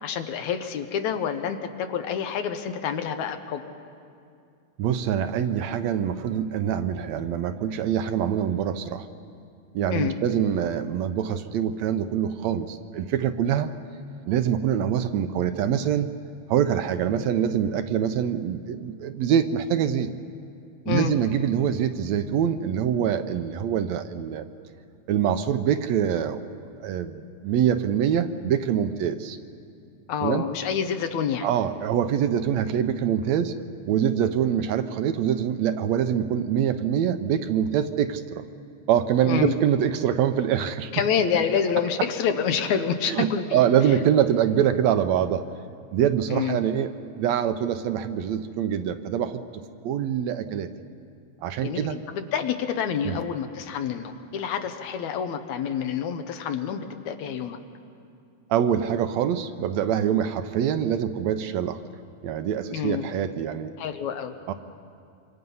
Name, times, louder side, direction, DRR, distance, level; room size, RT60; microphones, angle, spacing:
voice 1, 0.0-3.6 9.9-10.2 20.9-21.2 30.1-31.5 39.3-39.5 40.9-43.6 46.3-46.6 51.6-57.6 62.7-63.1 63.8-64.3, left 7 dB, 75° left, 7 dB, 2.3 m, -27 dB
voice 2, 4.8-9.1 9.7-13.7 14.3-16.1 16.5-20.1 20.9-24.5 25.1-26.4 26.8-29.4 30.2-30.4 31.4-33.5 33.9-38.4 38.9-40.9 43.1-45.4 45.9-49.4 49.8-50.7 51.4-52.0 53.0-53.2 58.5-61.8 62.2-63.7 64.5-64.6, right 9 dB, 75° right, 9 dB, 1.9 m, -24 dB
26.0 x 25.0 x 5.5 m, 2.4 s
omnidirectional pair, 3.4 m